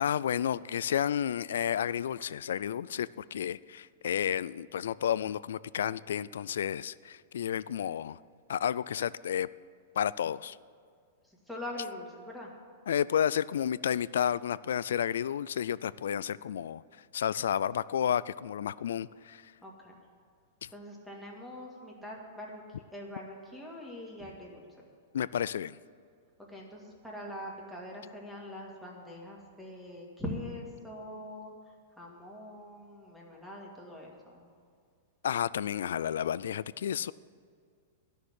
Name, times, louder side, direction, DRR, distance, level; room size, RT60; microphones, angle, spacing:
voice 1, 0.0-8.2 8.5-9.5 10.0-10.6 12.9-16.8 17.1-19.4 25.1-25.8 35.2-37.1, left 9 dB, 90° left, 0.3 m, -31 dB
voice 2, 11.2-12.5 19.6-19.9 20.7-22.6 22.9-24.6 26.5-34.5, left 1 dB, ahead, 1.9 m, -43 dB
12.0 x 6.5 x 9.6 m
supercardioid pair, 165°, 0 cm